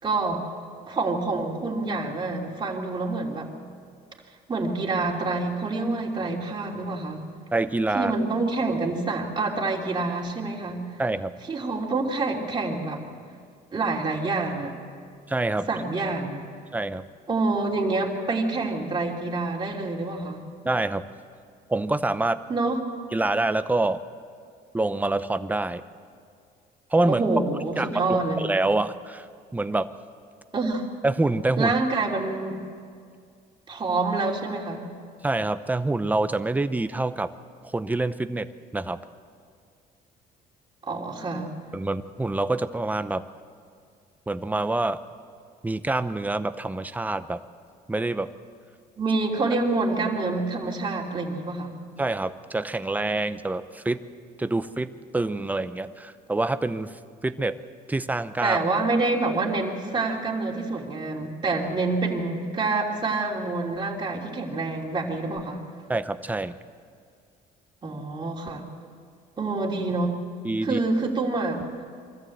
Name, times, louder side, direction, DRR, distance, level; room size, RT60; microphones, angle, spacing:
voice 1, 0.0-0.5 0.9-3.5 4.5-7.2 7.9-10.8 11.5-13.0 13.7-14.8 15.7-16.4 17.3-20.4 22.5-22.8 27.1-28.5 30.5-30.8 31.6-32.6 33.7-34.9 40.8-41.5 49.0-51.7 58.4-65.6 67.8-68.6 69.4-70.2 70.6-71.6, right 3 dB, 25° right, -1 dB, 3.2 m, -27 dB
voice 2, 7.5-8.1 11.0-11.3 15.3-15.7 16.7-17.0 20.6-21.1 21.7-22.4 23.1-24.0 24.7-25.8 26.9-27.2 27.8-28.2 28.4-29.3 29.5-29.9 31.0-31.7 35.2-37.3 37.6-38.5 38.7-39.0 41.7-43.3 44.3-45.0 45.6-47.4 47.9-48.3 52.0-54.0 54.4-56.9 57.2-57.5 57.9-58.6 65.9-66.6 70.4-70.8, right 2 dB, 10° right, 11 dB, 0.8 m, -26 dB
24.0 x 14.0 x 8.0 m, 2.2 s
cardioid pair, 110°, 17 cm